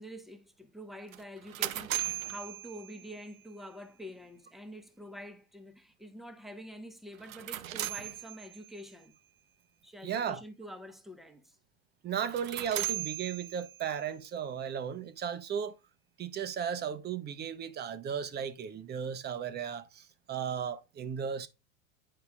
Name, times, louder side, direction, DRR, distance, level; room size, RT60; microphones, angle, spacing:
voice 1, 0.0-9.1 9.8-11.6, equal, ahead, 1.0 m, -47 dB
sound 1, 1.1-3.4 7.1-8.8 12.2-14.0, right 13 dB, 80° right, 0.6 m, -38 dB
voice 2, 10.0-10.4 12.0-15.8 16.2-21.5, right 8 dB, 25° right, 0.8 m, -35 dB
9.5 x 5.6 x 2.3 m
hypercardioid pair, 95°, 40 cm